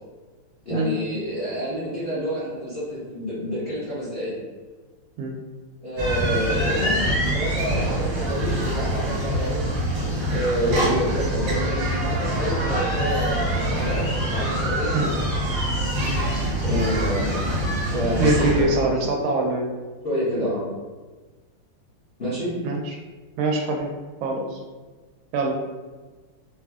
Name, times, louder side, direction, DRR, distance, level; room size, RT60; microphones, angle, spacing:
voice 1, 0.6-4.4 5.8-9.7 10.3-15.4 16.6-17.5 17.8-18.9 20.0-20.6 22.2-22.5, equal, 40° left, -11 dB, 0.9 m, -28 dB
sound 1, 6.0-18.6, equal, 55° right, 1.0 m, -25 dB
voice 2, 18.2-19.7 22.6-23.0 23.4-23.9 24.2-24.6 25.3-25.6, right 2 dB, 80° right, 1 dB, 1.4 m, -24 dB
4.1 x 2.5 x 2.3 m, 1.3 s
omnidirectional pair, 2.4 m